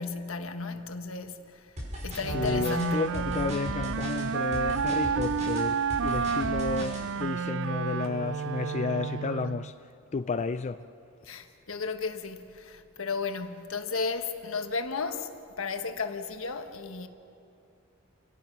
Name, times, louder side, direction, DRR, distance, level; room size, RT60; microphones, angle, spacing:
voice 1, 0.0-1.7 2.0-3.1 11.2-15.3 15.6-17.1, left 4 dB, 75° left, 1.4 m, -34 dB
sound 1, 1.8-7.0, equal, 35° right, 6.0 m, -38 dB
Wind instrument woodwind instrument, 2.2-9.7, right 6 dB, 65° right, 0.4 m, -30 dB
voice 2, 2.3-9.7 10.1-10.9, left 4 dB, 35° left, 0.4 m, -32 dB
29.0 x 18.0 x 6.1 m
head